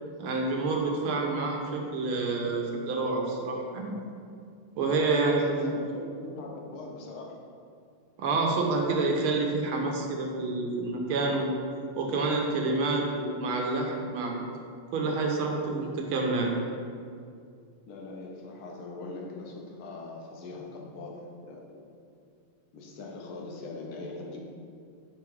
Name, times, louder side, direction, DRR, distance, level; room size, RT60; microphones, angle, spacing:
voice 1, 0.2-3.9 4.8-5.7 8.2-11.5 12.0-14.4 14.9-16.5, right 3 dB, 80° right, 0 dB, 1.8 m, -28 dB
voice 2, 5.1-7.4 17.9-21.9 22.7-24.4, left 2 dB, 80° left, 0 dB, 1.8 m, -41 dB
5.8 x 4.8 x 4.6 m, 2.3 s
omnidirectional pair, 2.3 m